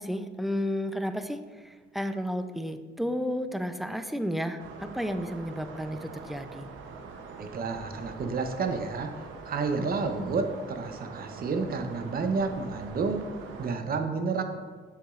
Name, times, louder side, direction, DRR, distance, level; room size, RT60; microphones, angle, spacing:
voice 1, 0.0-6.7 9.8-9.9 10.2-10.3, equal, ahead, 9 dB, 0.4 m, -32 dB
sound 1, 4.6-13.7, right 4 dB, 85° right, 0.7 m, -44 dB
voice 2, 7.4-9.1 9.4-13.2 13.6-14.4, right 4 dB, 50° right, 6 dB, 0.7 m, -30 dB
7.2 x 6.9 x 2.4 m, 1.5 s
cardioid pair, 90°, 20 cm